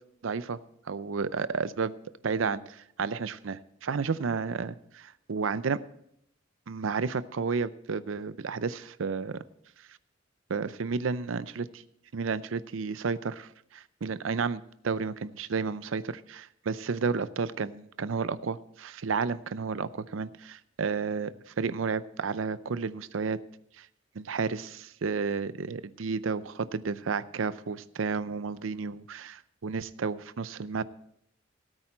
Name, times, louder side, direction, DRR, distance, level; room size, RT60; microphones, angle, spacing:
voice 1, 0.2-0.6 0.9-1.9 2.2-5.8 6.7-9.4 10.5-11.8 12.1-23.4 23.8-23.9 24.2-30.8, right 5 dB, 85° right, 16 dB, 0.5 m, -32 dB
17.0 x 8.9 x 4.4 m, 0.72 s
head